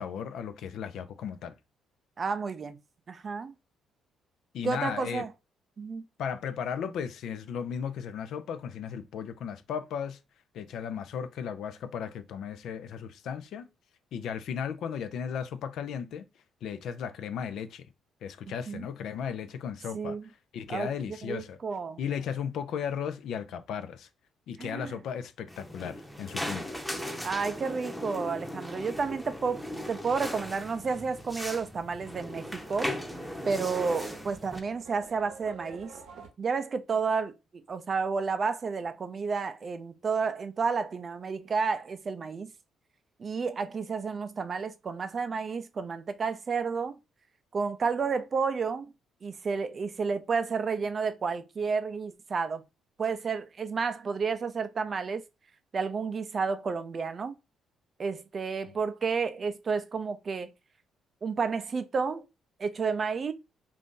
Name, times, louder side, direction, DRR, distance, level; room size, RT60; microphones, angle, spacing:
voice 1, 0.0-1.5 4.5-5.2 6.2-10.2 10.5-13.7 14.1-16.3 16.6-17.9 18.2-20.2 20.5-21.6 22.0-24.1 24.5-26.7, left 7 dB, 75° left, 0.4 m, -35 dB
voice 2, 2.2-2.8 3.1-3.5 4.6-5.3 5.8-6.0 18.7-18.8 19.9-20.3 20.7-22.0 24.6-24.9 27.2-29.6 29.9-32.9 33.5-35.9 36.4-42.5 43.2-47.0 47.5-48.9 49.2-52.6 53.0-55.2 55.7-57.4 58.0-60.5 61.2-62.3 62.6-63.3, right 5 dB, 45° right, 0.4 m, -31 dB
sound 1, 25.5-34.6, left 1 dB, ahead, 0.8 m, -38 dB
Livestock farm animals working animals, 31.0-36.3, right 5 dB, 80° right, 0.7 m, -51 dB
2.6 x 2.5 x 3.6 m
supercardioid pair, 65°, 0 cm